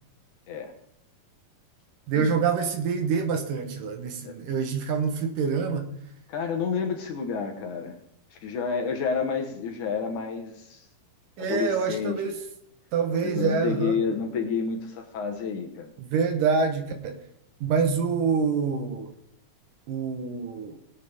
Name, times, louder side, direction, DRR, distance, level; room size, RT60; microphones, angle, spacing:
voice 1, 2.1-5.9 11.4-12.4 12.9-14.0 16.0-17.2 17.6-19.1 19.9-20.8, right 5 dB, 70° right, 6 dB, 2.7 m, -26 dB
voice 2, 6.3-8.0 8.3-10.9 11.4-12.2 13.1-15.9, left 6 dB, 65° left, 3 dB, 2.5 m, -30 dB
20.5 x 8.4 x 3.6 m, 0.74 s
omnidirectional pair, 4.2 m